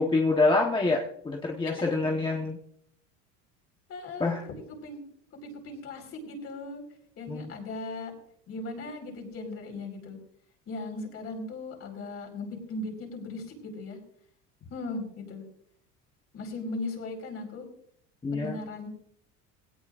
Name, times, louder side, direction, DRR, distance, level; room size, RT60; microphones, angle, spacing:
voice 1, 0.0-2.6 4.2-4.4 7.3-7.5 18.2-18.6, left 3 dB, 15° left, 1 dB, 1.2 m, -26 dB
voice 2, 3.9-5.0 5.4-6.8 7.2-8.1 8.5-10.2 10.7-14.0 14.7-15.4 16.3-17.7 18.3-18.9, left 2 dB, 40° left, 2 dB, 4.7 m, -38 dB
19.5 x 17.5 x 2.5 m, 0.67 s
cardioid pair, 140°, 36 cm